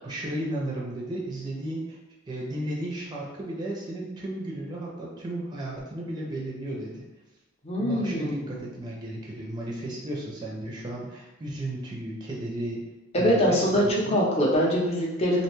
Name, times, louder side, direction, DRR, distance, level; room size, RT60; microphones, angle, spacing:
voice 1, 0.0-2.0 2.3-7.0 7.8-12.8 13.2-14.2, right 1 dB, 20° right, -3 dB, 0.4 m, -34 dB
voice 2, 7.6-8.6 13.1-13.8 14.1-15.4, equal, 30° left, -2 dB, 0.5 m, -23 dB
2.5 x 2.2 x 3.0 m, 1.0 s
head